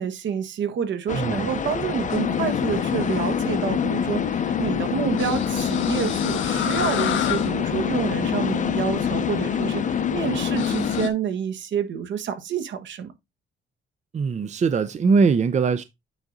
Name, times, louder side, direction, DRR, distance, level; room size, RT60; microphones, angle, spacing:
voice 1, 0.0-13.1, right 7 dB, 65° right, 1.3 m, -28 dB
sound 1, 1.1-11.0, left 7 dB, 40° left, 0.8 m, -30 dB
voice 2, 1.1-1.5 14.1-15.8, right 5 dB, 35° right, 0.6 m, -21 dB
sound 2, 2.1-11.1, left 8 dB, 75° left, 1.2 m, -26 dB
9.1 x 3.7 x 3.9 m
cardioid pair, 90°, 20 cm